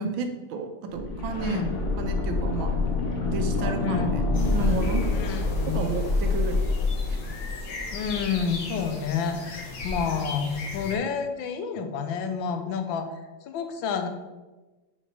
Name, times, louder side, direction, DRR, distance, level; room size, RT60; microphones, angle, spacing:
voice 1, 0.0-1.6 2.0-2.8 3.3-4.2 4.5-5.0 5.7-6.7, right 4 dB, 85° right, 6 dB, 1.6 m, -31 dB
sound 1, 0.9-8.7 9.0-9.1, left 3 dB, 45° left, 1.1 m, -27 dB
voice 2, 1.4-1.8 3.8-4.2 5.1-5.8 7.9-13.1 13.5-14.1, left 6 dB, 80° left, 7 dB, 1.5 m, -29 dB
sound 2, 4.3-11.0, left 3 dB, 65° left, 1.7 m, -38 dB
5.4 x 5.1 x 5.4 m, 1.2 s
omnidirectional pair, 2.1 m